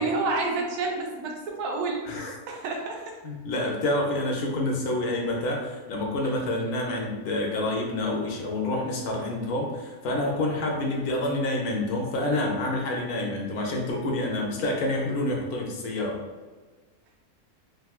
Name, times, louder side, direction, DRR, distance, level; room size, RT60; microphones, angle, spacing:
voice 1, 0.0-2.1 2.5-3.2, right 3 dB, 85° right, 0 dB, 1.1 m, -29 dB
voice 2, 3.2-16.2, left 1 dB, 80° left, 0 dB, 1.2 m, -28 dB
3.5 x 2.5 x 2.3 m, 1.3 s
omnidirectional pair, 1.6 m